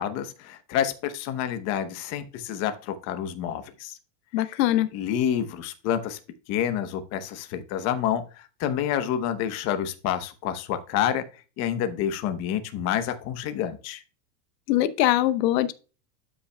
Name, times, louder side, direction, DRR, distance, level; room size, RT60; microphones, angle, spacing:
voice 1, 0.0-4.0 4.4-4.6 4.9-6.2 6.5-14.0, left 10 dB, 30° left, 0.9 m, -28 dB
voice 2, 4.3-4.9 14.7-15.7, left 14 dB, 75° left, 0.9 m, -22 dB
12.0 x 5.9 x 2.2 m
supercardioid pair, 160°, 50 cm